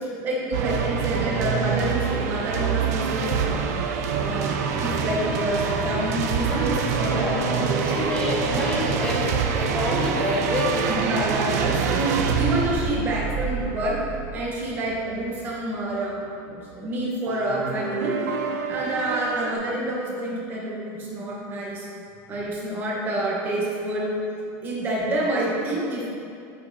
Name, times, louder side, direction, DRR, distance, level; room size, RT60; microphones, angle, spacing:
voice 1, 0.0-3.6 4.2-8.7 10.9-14.0 14.3-18.2 18.7-21.9 22.3-24.1 24.6-26.1, right 1 dB, 25° right, -4 dB, 1.2 m, -28 dB
sound 1, 0.5-15.5 17.3-19.6, right 6 dB, 85° right, 0.5 m, -26 dB
sound 2, 4.1-15.4, left 2 dB, 65° left, 1.0 m, -39 dB
voice 2, 7.8-10.9, left 2 dB, 10° left, -4 dB, 0.9 m, -28 dB
9.3 x 5.2 x 2.8 m, 2.5 s
supercardioid pair, 175°, 8 cm